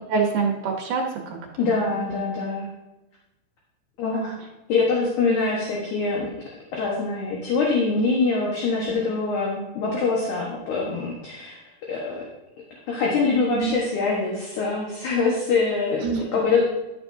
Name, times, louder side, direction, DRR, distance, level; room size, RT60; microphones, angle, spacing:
voice 1, 0.1-1.7 2.0-2.2 8.8-8.9 13.5-13.8 16.0-16.2, right 5 dB, 70° right, 0 dB, 2.2 m, -26 dB
voice 2, 1.6-2.7 4.0-4.3 4.7-6.3 6.7-11.6 11.9-12.3 12.9-16.6, left 4 dB, 65° left, -3 dB, 2.4 m, -24 dB
12.0 x 7.2 x 2.6 m, 1.0 s
omnidirectional pair, 4.4 m